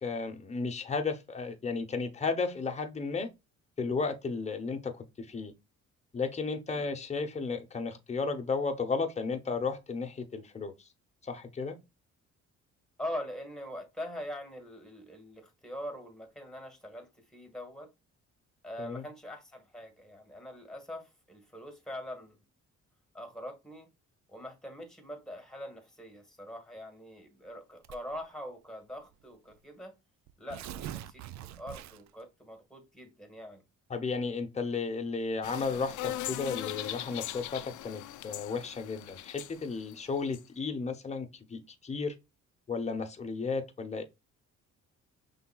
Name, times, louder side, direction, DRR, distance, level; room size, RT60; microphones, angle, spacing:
voice 1, 0.0-3.3 3.8-5.5 6.1-10.7 11.2-11.8 18.8-19.0 33.9-42.1 42.7-44.0, left 4 dB, 20° left, 0.9 m, -34 dB
voice 2, 13.0-17.9 18.6-22.4 23.1-23.9 24.3-29.9 30.4-33.6, equal, ahead, 1.7 m, -43 dB
Tearing, 27.8-28.2 29.1-29.2 29.5-29.6 30.3-32.2, right 12 dB, 65° right, 0.5 m, -43 dB
sound 1, 35.4-40.4, left 13 dB, 75° left, 0.5 m, -40 dB
5.7 x 3.4 x 2.3 m
cardioid pair, 90°, 30 cm